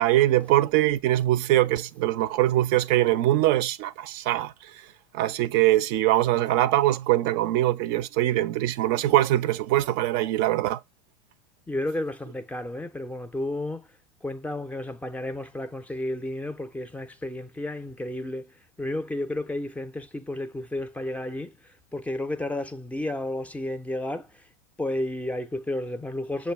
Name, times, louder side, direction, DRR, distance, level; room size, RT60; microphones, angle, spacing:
voice 1, 0.0-4.5 5.1-10.8, right 14 dB, 50° right, 0.4 m, -22 dB
voice 2, 11.7-13.9 14.2-24.5 24.8-26.5, left 1 dB, 5° left, 0.5 m, -32 dB
6.6 x 2.2 x 3.3 m
hypercardioid pair, 100°, 21 cm